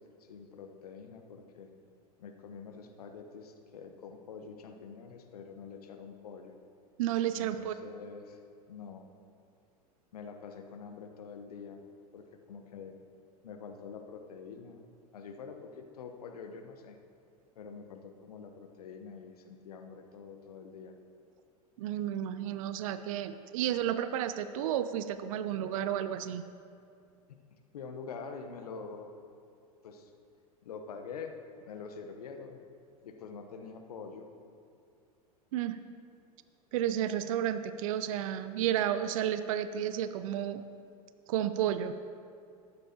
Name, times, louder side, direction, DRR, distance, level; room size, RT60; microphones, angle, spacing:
voice 1, 0.0-1.7 2.2-6.6 7.3-8.4 8.7-9.1 10.1-11.8 12.1-13.0 13.4-14.8 15.1-17.0 17.6-20.9 27.7-29.1 29.8-30.1 30.6-31.3 31.7-32.6 33.0-34.3, left 5 dB, 70° left, 5 dB, 1.1 m, -46 dB
voice 2, 7.0-7.7 21.8-26.4 35.5-35.8 36.7-40.6 41.3-42.0, right 10 dB, 60° right, 12 dB, 0.5 m, -32 dB
14.0 x 11.5 x 2.9 m, 2.3 s
figure-of-eight pair, 90°, 20 cm